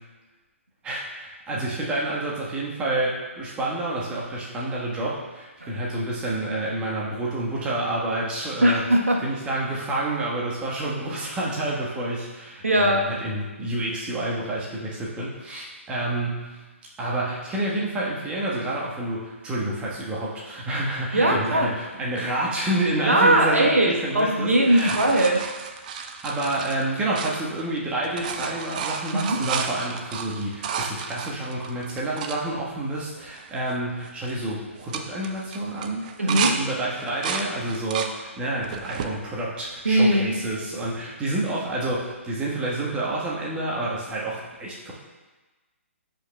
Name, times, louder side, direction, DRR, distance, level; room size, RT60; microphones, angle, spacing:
voice 1, 0.8-8.8 9.2-16.6 17.0-25.0 25.3-25.4 26.2-44.9, right 1 dB, 15° right, -5 dB, 1.3 m, -29 dB
voice 2, 8.6-9.2 12.6-13.1 21.1-21.7 23.1-25.4 29.1-29.4 36.2-36.5 39.8-40.3, right 1 dB, 80° right, 0 dB, 1.1 m, -20 dB
sound 1, 24.1-27.8 28.0-32.4 33.0-33.1 33.3-33.7 34.0-34.3 34.7-36.6 36.9-38.1 38.6-39.1 39.8-40.5 42.1-42.2, right 6 dB, 35° right, 0.5 m, -32 dB
12.0 x 5.2 x 2.2 m, 1.2 s
figure-of-eight pair, 130°, 7 cm